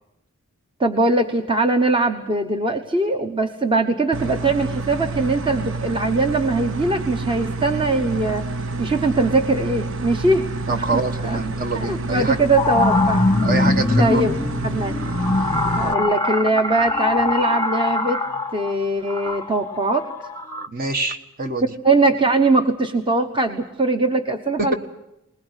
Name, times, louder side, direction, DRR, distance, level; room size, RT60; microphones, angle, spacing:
voice 1, 0.8-8.5 8.8-11.4 11.7-13.2 14.0-14.3 14.6-15.0 15.8-18.2 18.5-20.1 21.8-24.7, right 2 dB, 25° right, 5 dB, 1.1 m, -21 dB
sound 1, 4.1-15.9, right 2 dB, 60° right, 0.8 m, -28 dB
voice 2, 10.7-12.4 13.4-14.2 20.7-21.7 24.6-24.7, right 2 dB, 40° right, 7 dB, 1.4 m, -25 dB
sound 2, 11.3-11.4 12.1-20.7, left 2 dB, 15° left, 1.0 m, -22 dB
21.0 x 20.5 x 8.2 m, 0.87 s
head